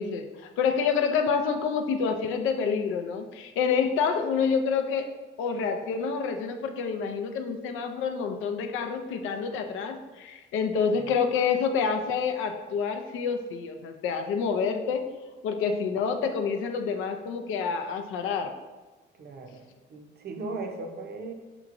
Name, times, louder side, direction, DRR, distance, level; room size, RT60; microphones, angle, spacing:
voice 1, 0.0-5.1 5.4-15.1 15.4-18.5, left 6 dB, 90° left, 6 dB, 0.4 m, -28 dB
voice 2, 19.1-19.6 19.9-21.3, right 3 dB, 55° right, 4 dB, 0.6 m, -37 dB
4.6 x 2.9 x 2.5 m, 1.2 s
cardioid pair, 90°, 20 cm